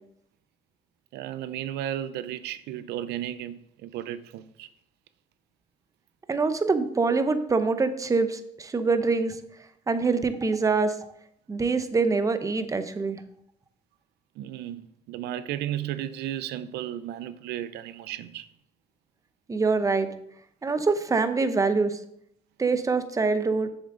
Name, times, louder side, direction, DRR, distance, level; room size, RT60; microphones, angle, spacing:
voice 1, 1.1-4.7 14.4-18.5, right 11 dB, 80° right, 0.5 m, -34 dB
voice 2, 6.3-9.4 9.9-10.9 11.5-13.2 19.5-20.1 20.6-22.0 22.6-23.7, right 4 dB, 20° right, 0.7 m, -24 dB
7.3 x 7.0 x 3.8 m
cardioid pair, 110°, 17 cm